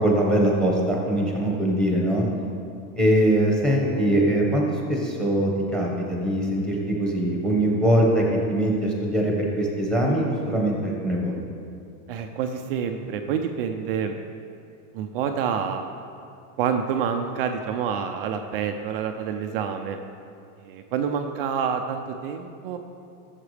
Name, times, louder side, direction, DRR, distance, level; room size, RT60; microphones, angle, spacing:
voice 1, 0.0-2.3 3.0-11.4, right 1 dB, ahead, -1 dB, 1.4 m, -22 dB
voice 2, 12.1-14.2 14.9-15.8 16.6-20.0 20.6-22.8, right 7 dB, 40° right, 6 dB, 0.5 m, -27 dB
15.0 x 7.3 x 3.4 m, 2.6 s
supercardioid pair, 155°, 47 cm